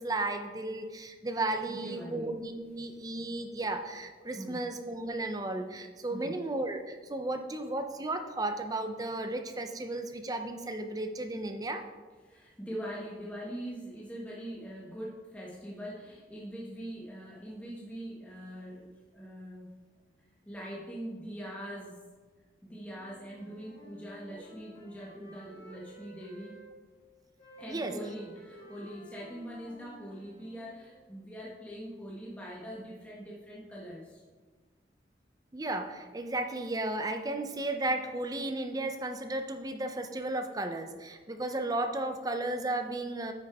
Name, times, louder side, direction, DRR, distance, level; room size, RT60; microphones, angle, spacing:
voice 1, 0.0-11.8 27.7-27.9 35.5-43.3, right 2 dB, 20° right, 6 dB, 0.6 m, -34 dB
voice 2, 1.7-2.4 3.2-3.3 4.3-4.6 6.1-6.3 12.2-19.7 20.5-22.0 22.6-26.5 27.6-34.2, equal, 10° left, -6 dB, 1.1 m, -42 dB
Wind instrument woodwind instrument, 22.8-26.7 27.4-30.9, right 1 dB, 30° left, 2.2 m, -53 dB
9.7 x 6.2 x 3.5 m, 1.4 s
head